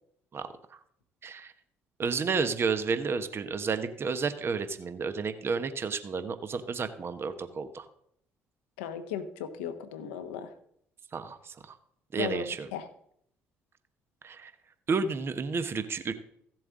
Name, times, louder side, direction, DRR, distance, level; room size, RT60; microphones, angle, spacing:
voice 1, 2.0-7.8 11.1-11.7 12.1-12.7 14.2-14.5 14.9-16.1, right 5 dB, 40° right, 10 dB, 1.0 m, -31 dB
voice 2, 8.8-10.5 12.2-12.9, left 8 dB, 85° left, 7 dB, 1.0 m, -36 dB
15.0 x 7.6 x 3.8 m, 0.71 s
hypercardioid pair, 55°, 6 cm